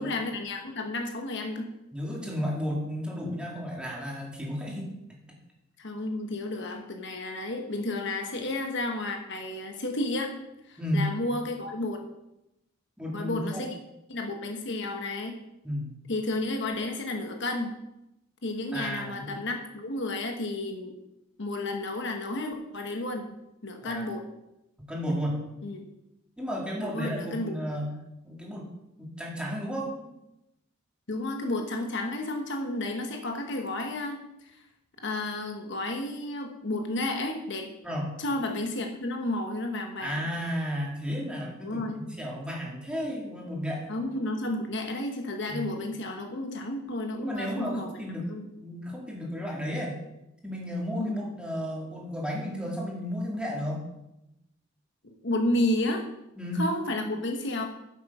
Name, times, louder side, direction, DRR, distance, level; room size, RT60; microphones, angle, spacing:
voice 1, 0.0-1.7 5.8-10.3 10.6-12.1 13.1-13.7 14.1-15.4 16.1-17.7 18.4-21.0 21.4-23.3 23.6-24.2 25.6-25.9 26.8-27.6 31.1-34.2 35.0-37.7 38.2-40.2 41.6-42.0 43.9-48.0 48.3-48.5 50.9-51.3 55.2-56.1 56.6-57.7, left 1 dB, 65° left, 4 dB, 1.2 m, -32 dB
voice 2, 1.9-4.9 10.8-11.1 13.0-13.6 15.6-15.9 18.7-19.4 23.8-24.0 24.9-25.4 26.4-28.7 29.0-30.1 37.8-38.1 40.0-41.9 42.2-43.9 45.5-45.6 47.2-48.3 48.6-50.0 50.4-53.8 56.4-56.6, equal, 5° right, -2 dB, 2.4 m, -33 dB
9.0 x 7.0 x 5.5 m, 0.88 s
head